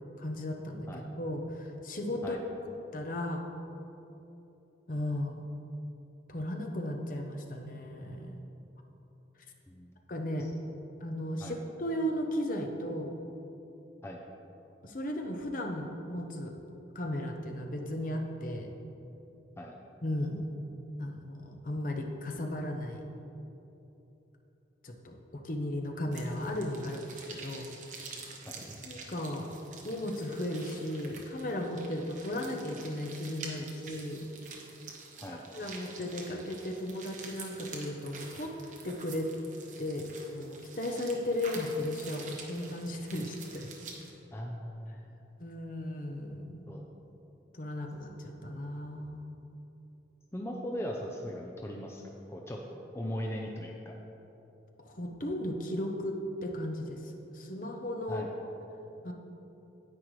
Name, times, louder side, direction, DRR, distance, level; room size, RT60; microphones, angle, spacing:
voice 1, 0.2-2.4 2.9-3.4 4.9-5.5 6.3-8.4 10.1-10.5 11.0-13.1 14.8-16.6 16.9-18.7 20.0-20.4 21.0-23.0 24.8-27.6 28.8-29.5 29.8-34.2 35.3-38.5 38.8-39.3 39.8-40.1 40.3-43.7 45.4-46.6 47.5-49.2 54.8-58.2 59.0-59.1, left 1 dB, 45° left, 3 dB, 0.8 m, -35 dB
sound 1, 26.1-44.1, right 4 dB, 45° right, 1.0 m, -47 dB
voice 2, 44.3-45.0 46.7-46.8 50.3-52.0 52.3-53.9 58.1-58.3, equal, 15° left, 0 dB, 0.5 m, -39 dB
9.8 x 8.6 x 3.2 m, 3.0 s
head